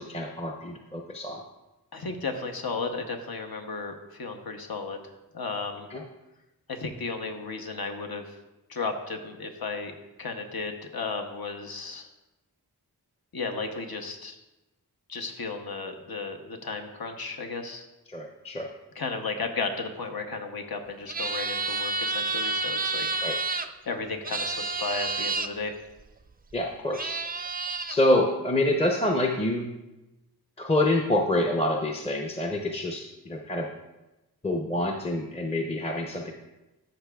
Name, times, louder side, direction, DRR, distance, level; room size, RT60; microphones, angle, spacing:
voice 1, 0.0-1.4 5.9-6.0 18.1-18.7 23.2-23.4 26.5-27.2 27.9-29.8 30.6-33.7 34.4-36.3, left 1 dB, 15° left, 1 dB, 0.6 m, -27 dB
voice 2, 1.9-5.9 6.7-8.4 8.7-12.1 13.3-14.4 15.1-17.9 18.9-23.1 23.5-25.7, left 4 dB, 65° left, 4 dB, 0.9 m, -34 dB
sound 1, 21.1-23.7 24.2-25.5 26.5-26.6 26.9-28.0, right 3 dB, 25° right, 0.4 m, -30 dB
13.0 x 5.8 x 2.3 m, 1.0 s
wide cardioid pair, 55°, 38 cm